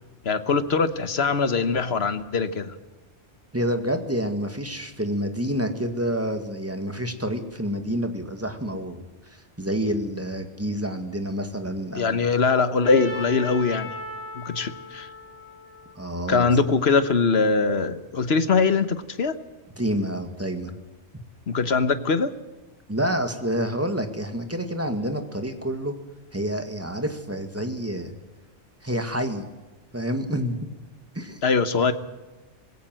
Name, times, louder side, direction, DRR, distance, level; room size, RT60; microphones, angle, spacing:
voice 1, 0.2-2.7 11.9-14.0 14.3-15.1 16.3-19.3 21.5-22.3 31.4-31.9, left 4 dB, 60° left, 12 dB, 1.4 m, -22 dB
voice 2, 3.5-9.0 9.3-12.3 16.0-16.5 19.8-20.7 22.9-25.9 26.3-28.1 28.8-29.5 29.9-30.6 31.1-31.4, equal, 10° right, 6 dB, 2.0 m, -28 dB
Trumpet, 12.8-16.9, left 2 dB, 30° right, 7.7 m, -38 dB
20.5 x 17.0 x 7.7 m, 1.2 s
omnidirectional pair, 1.2 m